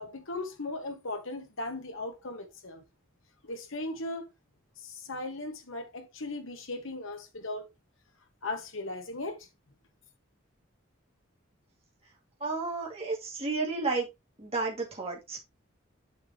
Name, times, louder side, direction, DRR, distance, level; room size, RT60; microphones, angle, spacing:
voice 1, 0.0-2.8 3.4-4.3 4.8-7.7 8.4-9.4, left 2 dB, 75° left, 1.6 m, -37 dB
voice 2, 12.4-14.1 14.4-15.4, right 3 dB, 30° right, 2.3 m, -32 dB
7.2 x 7.0 x 2.9 m
head